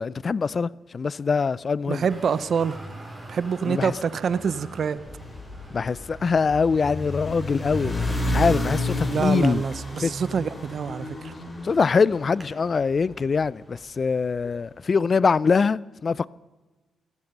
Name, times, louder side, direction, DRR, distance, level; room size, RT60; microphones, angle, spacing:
voice 1, 0.0-2.0 3.6-3.9 5.7-9.6 10.0-10.1 11.6-16.3, left 5 dB, 45° left, 0.4 m, -23 dB
voice 2, 1.9-2.8 3.3-5.0 9.1-11.3, right 6 dB, 60° right, 0.7 m, -26 dB
Traffic noise roadway noise, 2.1-13.9, right 1 dB, 20° right, 4.6 m, -47 dB
sound 1, 5.0-13.3, left 1 dB, 20° left, 5.6 m, -31 dB
17.5 x 14.5 x 5.4 m
supercardioid pair, 60°, 0 cm